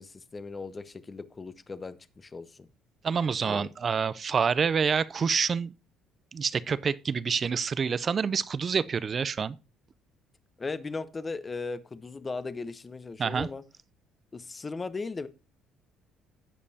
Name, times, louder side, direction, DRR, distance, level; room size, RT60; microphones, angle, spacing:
voice 1, 0.0-2.7 3.4-3.7 10.6-13.6 14.3-15.3, left 4 dB, 25° left, 0.8 m, -37 dB
voice 2, 3.0-5.7 6.3-9.6 13.2-13.5, right 6 dB, 35° right, 0.4 m, -27 dB
15.0 x 5.3 x 2.8 m
cardioid pair, 100°, 0 cm